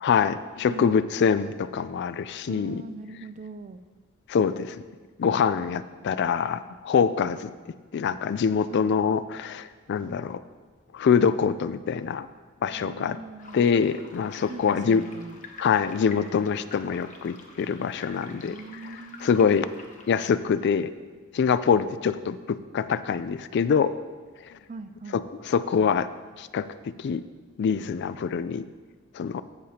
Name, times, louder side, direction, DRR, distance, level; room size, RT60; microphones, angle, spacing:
voice 1, 0.0-2.8 4.3-4.8 5.2-7.5 7.9-10.4 10.9-12.3 12.6-13.2 13.5-15.0 15.6-18.6 19.2-19.7 20.1-20.9 21.3-23.9 24.5-24.6 25.1-26.1 26.4-26.7 27.0-27.2 27.6-28.7 29.1-29.4, left 6 dB, 50° left, 14 dB, 0.3 m, -24 dB
voice 2, 0.7-1.1 2.5-3.8 5.3-5.7 8.7-8.9 12.8-13.6 14.5-15.4 18.3-19.6 24.7-25.2, right 3 dB, 35° right, 11 dB, 0.4 m, -41 dB
sound 1, 13.4-20.3, left 4 dB, 35° left, 0.8 m, -47 dB
15.0 x 6.7 x 2.8 m, 1.4 s
head